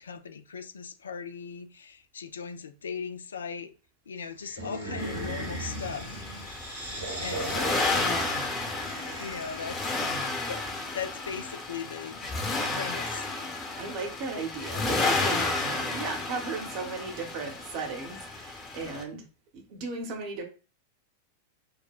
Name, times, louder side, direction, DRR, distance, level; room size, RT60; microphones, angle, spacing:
voice 1, 0.0-3.7 4.1-6.6 7.1-7.6 9.2-10.0 10.5-10.7 10.9-12.3 12.7-13.3, left 6 dB, 70° left, 0.3 m, -38 dB
sound 1, 4.4-9.9, right 1 dB, 70° right, 1.6 m, -37 dB
Accelerating revving vroom, 5.0-19.0, left 3 dB, 25° left, 0.9 m, -32 dB
voice 2, 13.8-19.2 19.5-20.4, right 4 dB, 45° right, 0.8 m, -36 dB
4.8 x 2.1 x 2.3 m
figure-of-eight pair, 90°, 0 cm